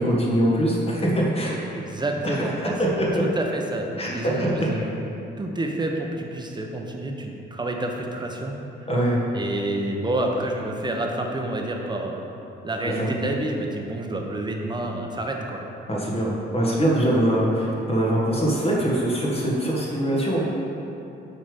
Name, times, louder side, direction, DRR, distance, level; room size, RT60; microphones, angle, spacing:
voice 1, 0.0-1.6 2.2-2.4 2.8-3.2 3.5-3.6 4.0-4.7 8.9-9.2 12.9-13.1 15.9-20.5, right 1 dB, 30° left, -4 dB, 1.8 m, -23 dB
voice 2, 1.7-2.7 3.2-5.0 5.4-8.6 9.3-12.3 12.6-15.6, right 1 dB, 20° right, 1 dB, 1.0 m, -28 dB
7.2 x 5.1 x 5.2 m, 2.9 s
cardioid pair, 90°, 20 cm